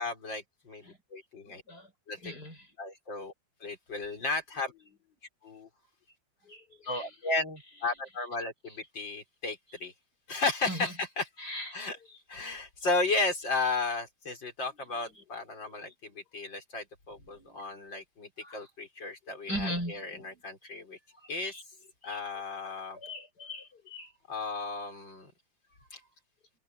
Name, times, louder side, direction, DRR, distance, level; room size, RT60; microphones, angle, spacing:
voice 1, 0.0-1.6 2.1-2.3 2.8-3.3 3.6-4.7 5.4-5.7 6.9-9.9 10.3-11.3 11.7-12.0 12.3-21.0 21.3-21.6 22.0-23.0 24.3-25.3 25.9-26.1, left 3 dB, 70° left, 5.7 m, -34 dB
voice 2, 1.5-1.9 2.2-2.7 4.5-5.0 6.5-8.3 8.7-8.8 9.7-9.8 10.7-11.0 11.4-12.4 14.7-15.1 15.7-16.1 17.2-17.8 18.4-18.7 19.5-20.4 21.5-21.6 22.0-22.2 23.0-24.1, equal, 55° left, 6.8 m, -42 dB
omnidirectional pair, 2.1 m